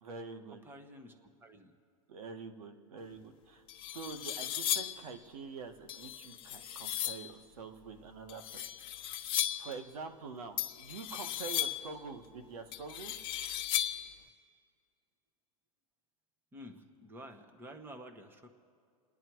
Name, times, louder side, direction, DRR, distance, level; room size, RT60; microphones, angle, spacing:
voice 1, 0.0-0.6 2.1-8.6 9.6-13.1, right 5 dB, 85° right, 7 dB, 1.7 m, -46 dB
voice 2, 0.7-1.7 16.5-18.5, equal, 10° right, 7 dB, 1.2 m, -50 dB
sound 1, 3.2-3.3 3.7-5.1 5.9-7.3 8.3-9.7 10.6-11.9 12.7-14.1, left 12 dB, 25° left, 0.9 m, -36 dB
30.0 x 10.0 x 4.7 m, 2.3 s
supercardioid pair, 150°, 18 cm